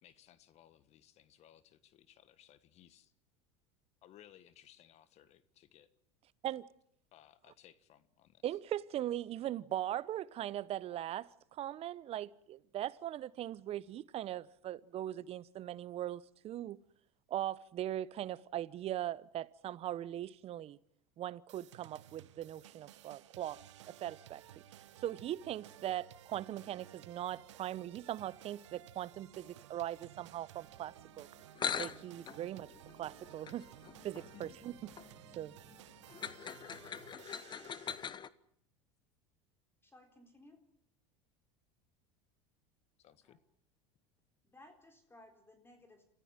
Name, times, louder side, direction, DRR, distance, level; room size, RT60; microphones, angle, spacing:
voice 1, 0.0-3.1 4.0-5.9 7.1-8.4 34.3-34.6 43.0-43.4, left 11 dB, 50° left, 1.5 m, -61 dB
voice 2, 8.4-16.8 17.3-20.8 21.2-24.4 25.0-31.3 31.8-33.7 34.0-34.9 35.3-35.5, right 12 dB, 45° right, 0.9 m, -40 dB
sound 1, 21.5-38.1, right 12 dB, 85° right, 1.0 m, -56 dB
sound 2, 31.2-31.3 31.5-38.3, left 7 dB, 30° left, 1.1 m, -43 dB
voice 3, 39.8-40.6 43.2-43.4 44.4-46.0, left 1 dB, 15° left, 3.8 m, -60 dB
27.5 x 15.0 x 9.1 m
hypercardioid pair, 95°, 15 cm